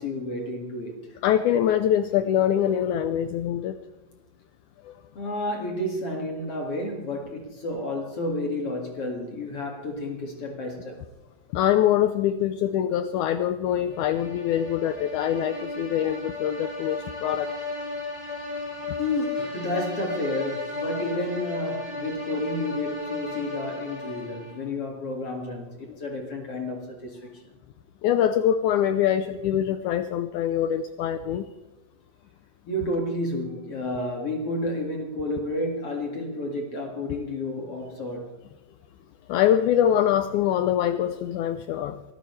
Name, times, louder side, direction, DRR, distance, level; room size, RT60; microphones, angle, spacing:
voice 1, 0.0-1.2 5.1-11.0 19.0-27.4 32.7-38.3, left 1 dB, 45° left, 2 dB, 2.8 m, -31 dB
voice 2, 1.2-3.8 4.8-5.0 11.5-17.5 25.9-26.0 28.0-31.5 39.3-42.0, left 10 dB, 75° left, 10 dB, 1.9 m, -24 dB
sound 1, 13.8-24.7, left 3 dB, 20° left, 5.8 m, -35 dB
24.0 x 13.5 x 3.3 m, 1.1 s
omnidirectional pair, 3.9 m